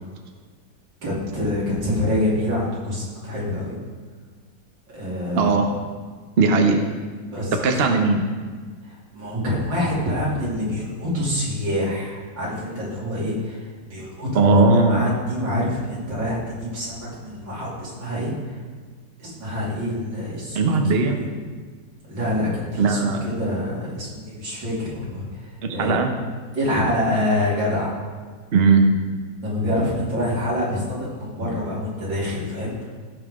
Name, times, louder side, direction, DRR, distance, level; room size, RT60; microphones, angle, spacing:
voice 1, 1.0-3.8 4.9-5.6 7.3-7.6 8.8-14.6 14.9-18.6 19.2-20.7 21.1-21.3 22.1-26.0 26.5-27.9 29.4-32.9, left 1 dB, 90° right, -6 dB, 3.6 m, -26 dB
voice 2, 5.3-5.7 6.4-6.8 7.6-8.2 14.3-15.0 20.5-21.2 22.8-23.2 25.6-26.1 28.5-28.8, right 4 dB, 45° right, 3 dB, 0.9 m, -18 dB
16.5 x 5.7 x 3.7 m, 1.5 s
omnidirectional pair, 1.9 m